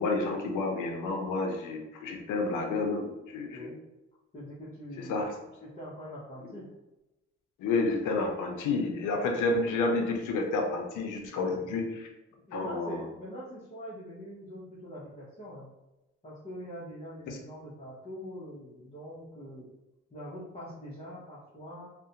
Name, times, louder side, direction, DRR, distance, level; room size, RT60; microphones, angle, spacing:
voice 1, 0.0-3.7 5.0-5.3 7.6-12.1 12.5-13.0 17.3-17.4, left 3 dB, 80° left, 2 dB, 0.6 m, -30 dB
voice 2, 4.3-5.2 5.6-6.7 11.5-11.8 12.3-15.7 16.2-19.7 20.1-21.9, equal, 25° left, -9 dB, 0.7 m, -43 dB
2.4 x 2.1 x 2.7 m, 1.0 s
cardioid pair, 90°, 30 cm